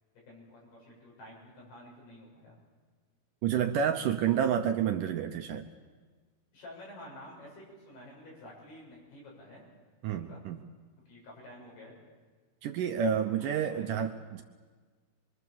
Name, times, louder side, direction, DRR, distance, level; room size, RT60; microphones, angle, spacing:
voice 1, 0.3-2.6 6.5-9.6 10.2-10.4 11.1-12.0 13.0-13.1 13.3-14.2, left 1 dB, 85° left, -3 dB, 9.6 m, -50 dB
voice 2, 3.4-5.7 10.0-10.6 12.6-14.4, right 8 dB, 75° right, 6 dB, 2.0 m, -29 dB
25.0 x 24.5 x 7.0 m, 1.4 s
omnidirectional pair, 4.5 m